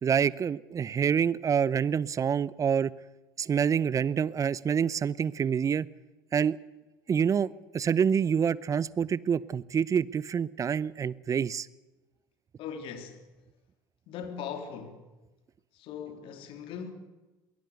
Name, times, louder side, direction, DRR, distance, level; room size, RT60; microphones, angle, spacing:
voice 1, 0.0-2.9 3.4-5.9 6.3-6.6 7.1-11.7, right 7 dB, 30° right, 0.7 m, -27 dB
voice 2, 12.6-13.2 14.1-15.0 15.7-16.9, left 7 dB, 55° left, 2.6 m, -39 dB
22.0 x 17.0 x 8.2 m
hypercardioid pair, 65°, 10 cm